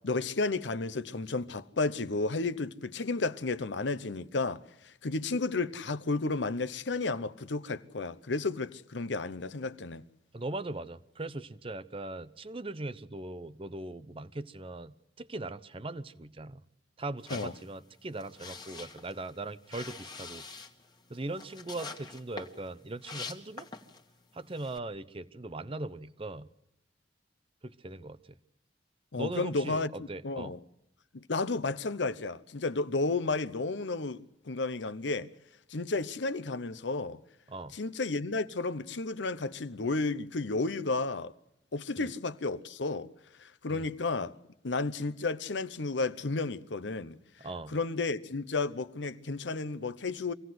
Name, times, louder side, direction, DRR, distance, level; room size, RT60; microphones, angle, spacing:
voice 1, 0.0-10.0 17.3-17.5 29.1-30.6 31.1-35.3 35.7-37.2 37.7-41.3 41.7-43.1 43.4-44.3 44.6-47.2 47.7-50.3, left 3 dB, 80° left, 0.9 m, -32 dB
voice 2, 10.3-16.6 17.0-20.4 21.1-23.7 24.3-26.5 27.6-28.2 29.1-30.5 37.5-37.7 42.0-42.1 43.7-43.9 47.4-47.8, right 2 dB, 30° right, 0.7 m, -40 dB
sound 1, 17.2-24.1 24.5-24.8, left 4 dB, 25° left, 1.6 m, -45 dB
25.0 x 16.5 x 7.8 m
head